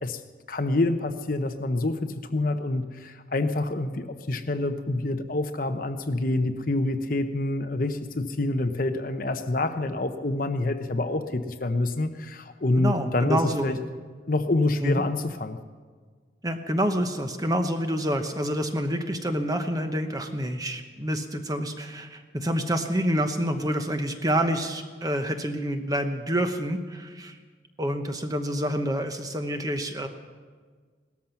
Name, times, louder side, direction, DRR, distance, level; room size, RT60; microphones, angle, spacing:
voice 1, 0.5-13.8 14.3-15.6, left 2 dB, 45° left, 8 dB, 0.8 m, -27 dB
voice 2, 12.8-13.8 14.8-15.0 16.4-27.4 27.8-30.1, equal, 20° right, 6 dB, 1.0 m, -27 dB
17.5 x 13.5 x 5.8 m, 1.5 s
head